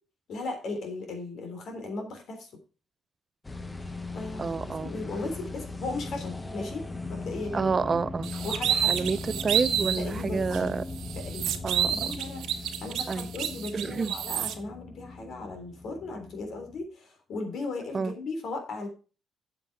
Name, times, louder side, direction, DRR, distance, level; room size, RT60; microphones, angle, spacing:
voice 1, 0.3-2.5 4.1-4.5 4.8-7.8 8.4-9.1 10.0-10.7 11.2-11.6 11.9-18.9, left 3 dB, 65° left, 3.5 m, -37 dB
sound 1, 3.4-16.8, left 2 dB, 20° left, 1.2 m, -39 dB
voice 2, 4.4-4.9 7.5-8.3 8.9-10.8 11.6-12.2 13.1-13.3 13.7-14.1 17.9-18.1, right 4 dB, 35° right, 0.6 m, -29 dB
sound 2, 8.2-10.1 10.5-10.6 11.0-14.5, right 9 dB, 80° right, 1.2 m, -29 dB
7.9 x 7.6 x 4.7 m
cardioid pair, 90°, 0 cm